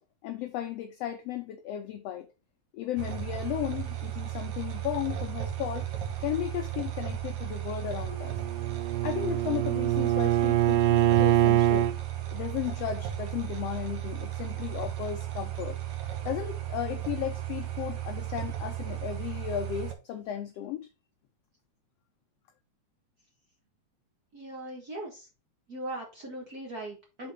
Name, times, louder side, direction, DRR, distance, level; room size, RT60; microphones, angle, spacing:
voice 1, 0.2-2.3 2.7-5.9 6.2-8.4 9.0-11.9 12.3-15.8 16.2-20.9, left 11 dB, 80° left, 1.4 m, -35 dB
sound 1, 3.0-19.9, right 12 dB, 70° right, 2.3 m, -35 dB
Bowed string instrument, 8.2-12.0, right 13 dB, 90° right, 2.1 m, -24 dB
voice 2, 24.3-25.2 25.7-27.3, right 1 dB, 40° right, 1.4 m, -39 dB
5.8 x 4.0 x 5.1 m
omnidirectional pair, 3.5 m